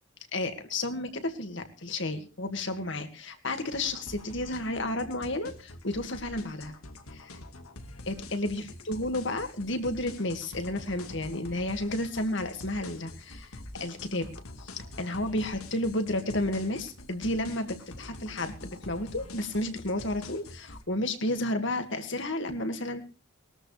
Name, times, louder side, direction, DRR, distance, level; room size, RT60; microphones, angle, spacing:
voice 1, 0.3-6.7 7.1-7.4 8.1-14.3 14.6-23.0, left 1 dB, 55° left, 7 dB, 2.0 m, -32 dB
sound 1, 3.7-20.8, left 2 dB, 90° left, 1.8 m, -46 dB
21.0 x 13.5 x 3.3 m, 0.34 s
head